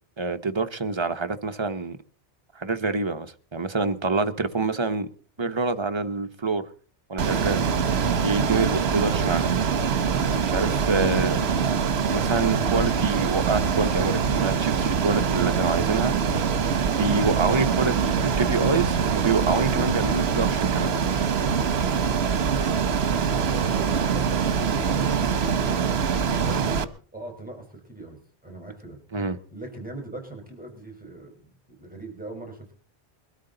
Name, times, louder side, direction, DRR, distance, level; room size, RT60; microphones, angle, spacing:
voice 1, 0.2-2.0 2.6-5.1 5.4-6.7 7.1-7.6 8.2-9.5 10.5-11.7 12.1-16.1 16.9-20.9 29.1-29.4, right 3 dB, 25° right, 1.0 m, -26 dB
Ocean, 7.2-26.8, right 6 dB, 70° right, 1.2 m, -24 dB
voice 2, 23.4-26.8 27.1-29.0 29.5-32.7, right 2 dB, 10° right, 4.5 m, -40 dB
22.0 x 13.0 x 3.9 m
omnidirectional pair, 1.1 m